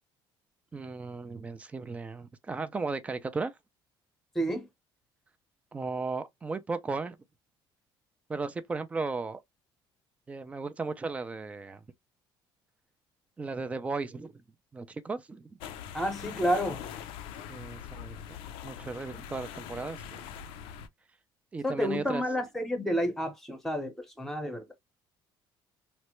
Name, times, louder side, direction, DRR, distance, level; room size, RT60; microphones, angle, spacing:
voice 1, 0.7-3.5 5.7-7.2 8.3-9.4 10.3-11.8 13.4-14.3 14.7-15.5 17.5-18.4 18.6-20.2 21.5-22.2, right 4 dB, 15° right, 0.3 m, -35 dB
voice 2, 4.3-4.7 15.9-16.8 21.6-24.7, equal, 5° left, 0.8 m, -30 dB
sound 1, 15.6-20.9, left 9 dB, 90° left, 0.4 m, -42 dB
3.2 x 2.1 x 3.0 m
cardioid pair, 160°, 9 cm